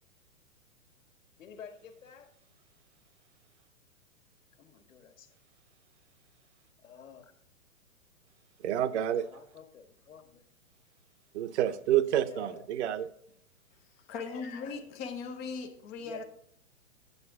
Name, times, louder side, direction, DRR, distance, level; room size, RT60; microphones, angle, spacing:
voice 1, 1.4-2.3 4.6-5.3 6.8-7.3 9.0-10.4 12.1-12.7 16.0-16.2, left 7 dB, 70° left, 6 dB, 1.7 m, -50 dB
voice 2, 8.6-9.2 11.3-13.1, right 11 dB, 55° right, 12 dB, 0.8 m, -28 dB
voice 3, 14.1-16.2, left 5 dB, 10° left, 3 dB, 0.3 m, -38 dB
9.6 x 7.9 x 3.6 m, 0.68 s
hypercardioid pair, 125°, 41 cm